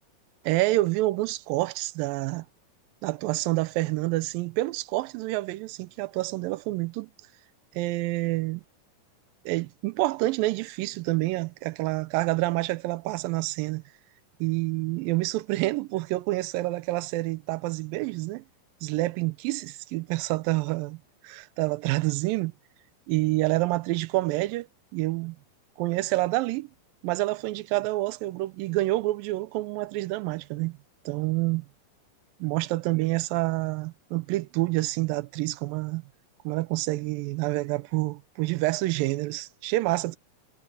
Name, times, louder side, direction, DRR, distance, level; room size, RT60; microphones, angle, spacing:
voice 1, 0.4-2.5 3.0-7.1 7.7-8.6 9.5-13.8 14.4-18.4 18.8-22.5 23.1-24.7 24.9-25.4 25.8-26.7 27.0-30.8 31.1-31.7 32.4-36.0 36.4-40.2, right 19 dB, 80° right, 2.3 m, -28 dB
omnidirectional pair, 4.2 m